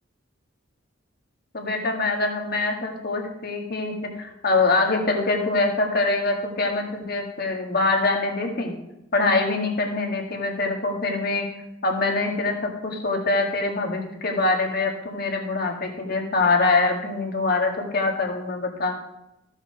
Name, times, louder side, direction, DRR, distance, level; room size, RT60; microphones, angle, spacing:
voice 1, 1.5-8.7 9.1-11.5 11.8-18.9, left 3 dB, 55° left, 2 dB, 1.9 m, -24 dB
14.0 x 5.7 x 5.8 m, 0.89 s
head